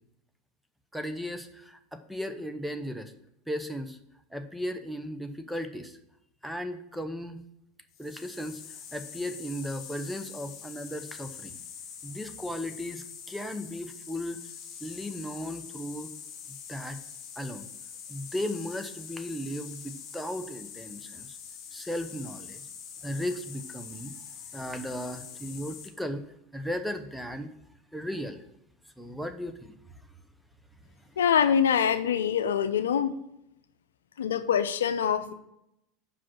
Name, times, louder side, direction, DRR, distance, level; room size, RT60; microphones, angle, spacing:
voice 1, 0.9-3.1 3.5-4.0 4.3-6.0 6.4-7.4 8.0-11.6 12.0-14.4 14.8-16.1 16.5-17.0 17.4-17.7 18.1-21.4 21.7-22.6 23.0-24.2 24.5-26.2 26.5-27.5 27.9-28.4 29.0-30.1, equal, ahead, 8 dB, 0.8 m, -36 dB
sound 1, 7.9-25.9, left 7 dB, 45° left, 1.6 m, -44 dB
voice 2, 31.2-33.1 34.2-35.3, left 8 dB, 85° left, 11 dB, 0.6 m, -24 dB
5.7 x 5.0 x 6.1 m, 0.81 s
hypercardioid pair, 90°, 0 cm